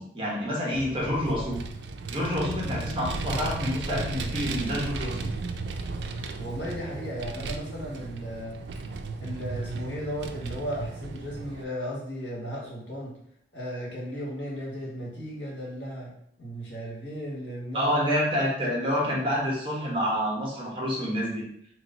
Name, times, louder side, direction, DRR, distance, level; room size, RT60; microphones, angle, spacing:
voice 1, 0.0-1.6 2.1-5.3 17.7-21.5, equal, 30° right, -3 dB, 1.1 m, -28 dB
Vehicle, 0.7-11.6, right 3 dB, 75° right, 0.4 m, -35 dB
voice 2, 6.4-8.6 9.2-13.2 13.5-17.9, equal, 80° left, -4 dB, 1.5 m, -35 dB
3.1 x 3.0 x 3.9 m, 0.68 s
head